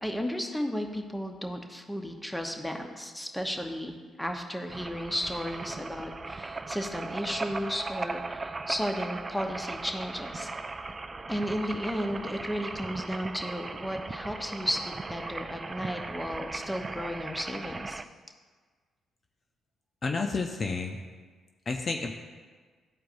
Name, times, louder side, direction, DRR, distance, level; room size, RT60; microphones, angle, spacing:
voice 1, 0.0-10.5 11.3-18.0, equal, 5° left, 3 dB, 1.0 m, -34 dB
sound 1, 4.7-18.0, right 3 dB, 30° right, 0.4 m, -38 dB
voice 2, 20.0-21.0 21.7-22.1, left 4 dB, 45° left, 3 dB, 0.6 m, -30 dB
13.0 x 4.5 x 2.6 m, 1.5 s
supercardioid pair, 60°, 0 cm